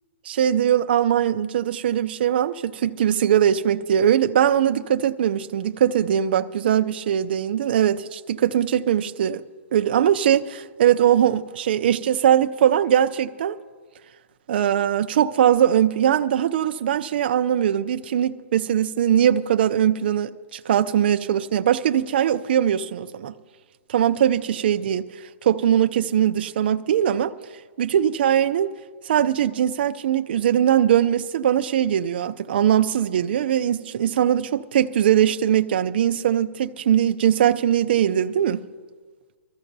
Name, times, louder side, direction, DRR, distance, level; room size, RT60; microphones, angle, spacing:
voice 1, 0.3-9.4 9.7-13.6 14.5-23.3 23.9-25.0 25.4-27.3 27.8-28.7 29.1-38.6, right 10 dB, 40° right, 0.5 m, -21 dB
24.0 x 14.0 x 2.7 m
hypercardioid pair, 175°, 8 cm